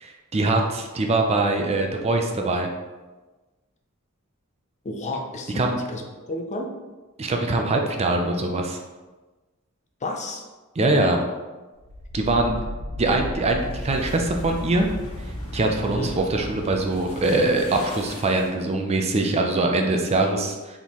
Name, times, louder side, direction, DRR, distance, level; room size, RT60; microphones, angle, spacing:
voice 1, 0.0-2.7 5.5-5.7 7.2-8.8 10.8-11.3 12.1-12.6 13.0-14.9 15.5-20.8, right 2 dB, 30° right, 3 dB, 0.4 m, -23 dB
voice 2, 4.8-6.7 10.0-10.4 15.9-16.2, left 2 dB, 35° left, 3 dB, 0.5 m, -31 dB
sound 1, 11.8-18.6, equal, 80° left, 1.5 m, -35 dB
4.3 x 3.5 x 3.0 m, 1.2 s
head